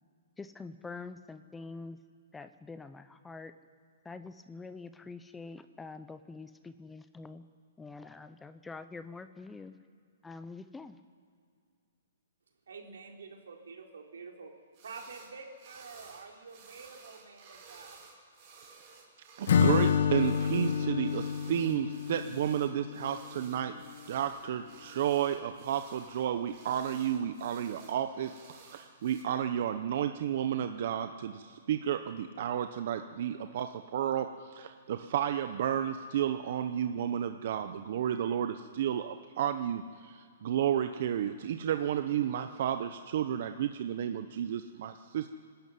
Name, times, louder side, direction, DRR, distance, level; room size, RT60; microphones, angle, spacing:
voice 1, 0.4-2.0 2.3-3.5 4.0-7.4 7.8-9.7 10.2-11.0, left 3 dB, 5° left, 11 dB, 0.6 m, -45 dB
voice 2, 12.7-14.5 14.8-18.0 27.9-28.4, right 4 dB, 85° right, 1 dB, 3.8 m, -48 dB
sound 1, 14.7-15.3 15.6-29.2, right 4 dB, 30° right, 6.3 m, -55 dB
voice 3, 19.4-23.7 24.1-28.3 28.6-45.3, right 10 dB, 50° right, 8 dB, 0.9 m, -32 dB
Acoustic guitar / Strum, 19.5-23.4, left 7 dB, 65° left, 1.0 m, -28 dB
24.0 x 13.0 x 9.3 m, 2.2 s
hypercardioid pair, 160°, 0 cm